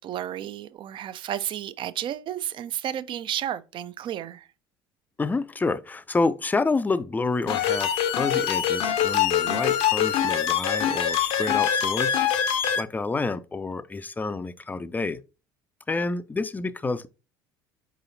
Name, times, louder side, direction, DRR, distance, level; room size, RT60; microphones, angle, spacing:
voice 1, 0.0-4.5, right 11 dB, 45° right, 0.4 m, -32 dB
voice 2, 5.2-12.2 12.8-15.2 15.9-17.1, left 3 dB, 15° left, 0.4 m, -28 dB
sound 1, 7.5-12.8, left 9 dB, 55° left, 0.6 m, -24 dB
4.8 x 4.0 x 2.7 m
hypercardioid pair, 65°, 12 cm